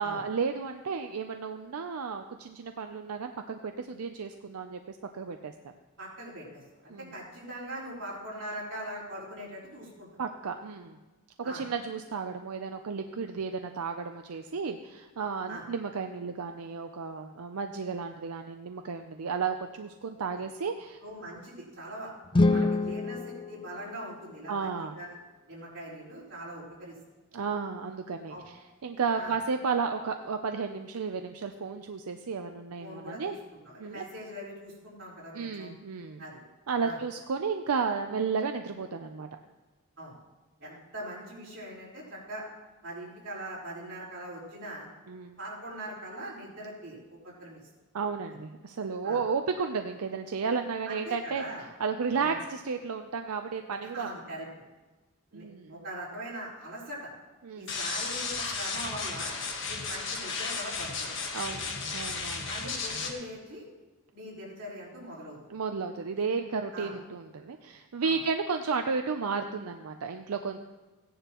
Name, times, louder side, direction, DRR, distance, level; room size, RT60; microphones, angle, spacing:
voice 1, 0.0-5.5 6.9-7.1 10.2-11.0 11.4-21.0 22.4-22.7 24.5-25.0 27.3-33.3 33.8-34.0 35.3-36.2 36.7-39.3 45.1-45.4 47.9-51.4 51.8-54.1 55.3-55.8 57.4-57.7 61.3-62.5 65.5-70.6, right 5 dB, 85° right, 6 dB, 0.5 m, -33 dB
voice 2, 6.0-10.1 11.4-11.6 15.5-15.6 21.0-22.1 22.5-25.2 25.5-26.9 27.3-27.4 28.3-28.5 29.2-29.3 32.8-33.4 33.6-35.7 36.2-36.4 36.8-37.0 40.0-40.2 40.6-42.4 42.8-44.9 45.4-47.6 49.0-49.2 50.8-51.6 52.1-52.4 53.8-54.6 55.3-57.1 57.5-59.3 59.7-61.1 61.6-61.8 62.5-63.6 64.1-65.4 66.1-66.3 66.7-66.9 68.0-68.2, right 1 dB, 55° right, -7 dB, 4.3 m, -41 dB
sound 1, 22.3-24.5, left 2 dB, 20° left, 0.4 m, -27 dB
sound 2, 57.7-63.1, left 4 dB, 55° left, 1.4 m, -34 dB
16.5 x 10.0 x 3.0 m, 1.2 s
head